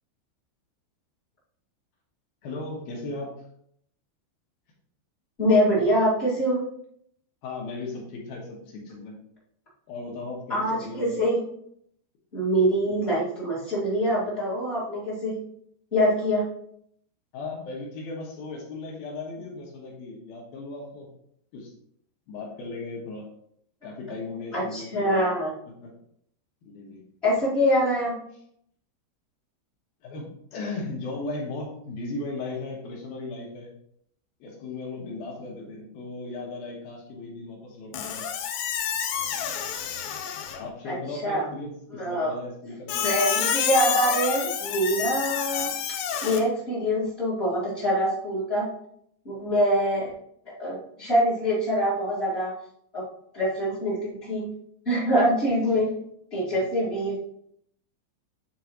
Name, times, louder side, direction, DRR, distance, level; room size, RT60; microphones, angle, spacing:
voice 1, 2.4-3.4 7.4-9.2 9.9-11.1 12.9-13.0 17.3-21.1 21.5-21.7 22.3-23.3 23.8-25.3 25.8-25.9 26.6-27.0 30.0-33.7 34.4-38.2 40.6-43.0 56.5-56.7, left 3 dB, 70° left, -1 dB, 2.4 m, -36 dB
voice 2, 5.4-6.6 10.5-11.4 12.3-15.4 15.9-16.4 24.5-25.5 27.2-28.1 40.8-40.9 41.2-41.4 41.9-42.3 43.0-45.7 46.2-48.7 49.2-50.1 50.4-52.5 52.9-53.0 53.3-54.5 54.8-55.9 56.3-57.2, equal, 45° left, -8 dB, 0.8 m, -24 dB
Squeak, 37.9-40.7 42.9-46.4, left 8 dB, 85° left, 2.9 m, -29 dB
9.4 x 3.8 x 3.1 m, 0.70 s
omnidirectional pair, 5.1 m